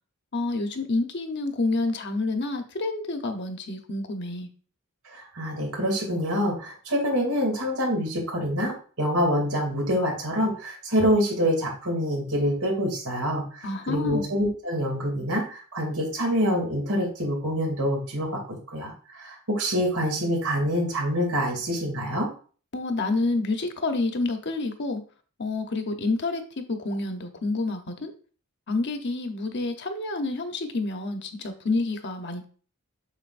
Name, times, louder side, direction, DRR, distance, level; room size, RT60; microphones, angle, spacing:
voice 1, 0.3-4.5 13.6-14.3 22.7-25.0 25.4-28.1 28.7-32.4, left 2 dB, 55° left, 6 dB, 1.0 m, -28 dB
voice 2, 5.2-18.9 19.2-22.3, equal, 85° right, 0 dB, 2.8 m, -26 dB
7.4 x 6.3 x 2.6 m, 0.40 s
head